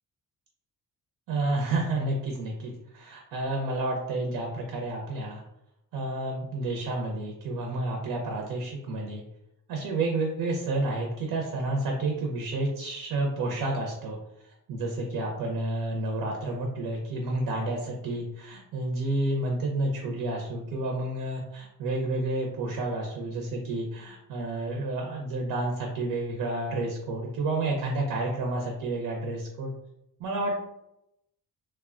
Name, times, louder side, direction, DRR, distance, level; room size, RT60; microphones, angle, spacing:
voice 1, 1.3-5.4 5.9-9.2 9.7-14.2 14.7-29.7 30.2-30.6, right 2 dB, 75° right, 0 dB, 0.6 m, -30 dB
3.1 x 2.1 x 2.4 m, 0.83 s
cardioid pair, 125°, 36 cm